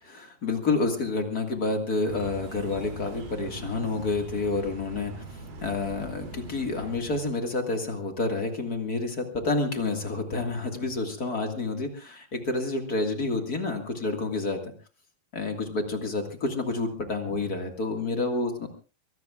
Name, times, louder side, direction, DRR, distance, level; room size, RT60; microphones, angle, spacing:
voice 1, 0.0-5.2 5.6-14.7 15.3-18.7, left 3 dB, 35° left, 4 dB, 1.5 m, -29 dB
sound 1, 2.1-7.3, right 2 dB, 80° right, 4.8 m, -41 dB
24.5 x 18.5 x 2.4 m, 0.34 s
omnidirectional pair, 4.3 m